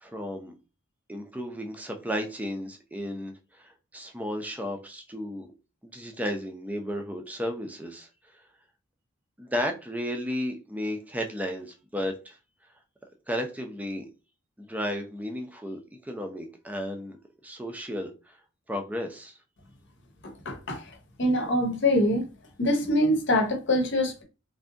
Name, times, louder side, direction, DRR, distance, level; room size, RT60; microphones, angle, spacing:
voice 1, 0.0-0.5 1.1-5.5 5.8-8.1 9.4-12.4 13.3-14.1 14.6-17.2 17.4-18.4 18.7-19.3, equal, 5° right, 0.5 m, -33 dB
voice 2, 20.2-20.8 21.2-22.2 22.6-24.2, left 1 dB, 60° left, 0.9 m, -24 dB
3.4 x 2.6 x 2.6 m
head